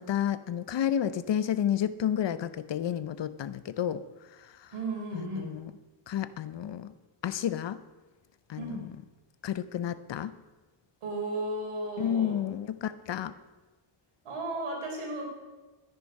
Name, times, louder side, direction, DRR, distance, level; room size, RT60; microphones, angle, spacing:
voice 1, 0.0-4.0 5.1-5.7 6.1-6.9 7.2-7.8 8.5-8.9 9.4-10.3 12.0-13.3, left 10 dB, 60° left, 14 dB, 0.8 m, -31 dB
voice 2, 4.7-5.5 8.6-8.9 11.0-12.4 14.2-15.3, right 2 dB, 85° right, 0 dB, 3.9 m, -35 dB
12.5 x 10.5 x 5.3 m, 1.2 s
wide cardioid pair, 110°, 49 cm